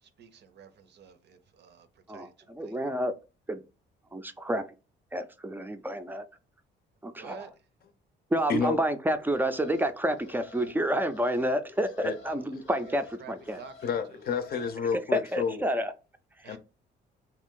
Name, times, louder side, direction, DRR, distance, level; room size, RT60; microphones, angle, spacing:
voice 1, 0.0-2.3 2.6-2.8 7.2-7.6 12.2-12.5 12.9-14.2 14.6-14.7 16.4-16.6, right 7 dB, 60° right, 0.5 m, -51 dB
voice 2, 2.1-3.1 3.5-3.6 4.1-4.7 5.1-6.2 7.0-7.5 8.3-13.6 15.1-15.9, right 1 dB, 10° right, 0.4 m, -29 dB
voice 3, 8.5-8.8 12.0-12.2 13.8-15.6 16.5-16.6, left 6 dB, 50° left, 0.5 m, -30 dB
Alarm, 9.1-14.7, left 5 dB, 85° left, 0.7 m, -51 dB
2.6 x 2.4 x 3.6 m
cardioid pair, 90°, 20 cm